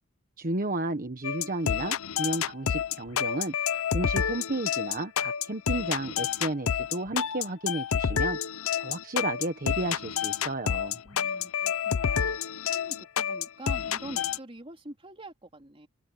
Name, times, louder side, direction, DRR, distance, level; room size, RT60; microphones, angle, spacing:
voice 1, 0.4-8.4 8.8-11.0, right 2 dB, 40° right, 1.3 m, -33 dB
sound 1, 1.2-14.4, left 8 dB, 70° left, 0.6 m, -29 dB
voice 2, 11.0-12.4 12.7-15.9, right 1 dB, 25° right, 3.3 m, -45 dB
head